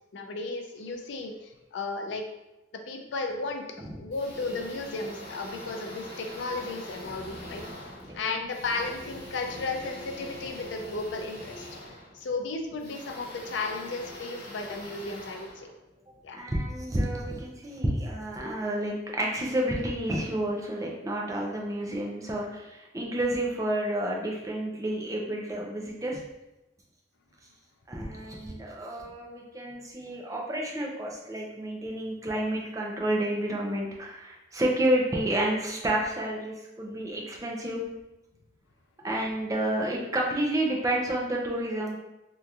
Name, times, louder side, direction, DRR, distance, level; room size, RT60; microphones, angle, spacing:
voice 1, 0.1-2.2 2.9-11.7 12.1-15.7 16.2-16.4, left 3 dB, 80° left, 4 dB, 0.4 m, -34 dB
sound 1, 4.1-16.3, left 1 dB, 50° left, 1.1 m, -43 dB
voice 2, 16.3-26.2 27.9-37.8 39.0-42.0, right 1 dB, 20° right, -2 dB, 0.5 m, -30 dB
3.5 x 2.8 x 2.4 m, 0.96 s
head